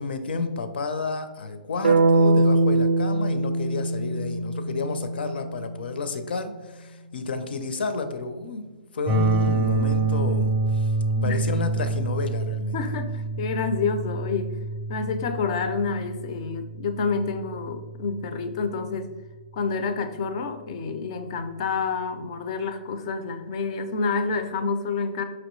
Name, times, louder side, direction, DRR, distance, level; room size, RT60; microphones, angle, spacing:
voice 1, 0.0-8.6 8.9-10.9 11.2-12.8, left 4 dB, 80° left, 9 dB, 0.6 m, -30 dB
sound 1, 1.8-5.9, right 2 dB, 80° right, 0.3 m, -22 dB
sound 2, 9.1-19.0, right 3 dB, 10° right, 0.6 m, -27 dB
voice 2, 12.7-14.5 14.9-19.1 19.5-25.2, left 4 dB, 35° left, 9 dB, 0.4 m, -28 dB
5.0 x 3.0 x 3.0 m, 1.3 s
hypercardioid pair, 170°, 5 cm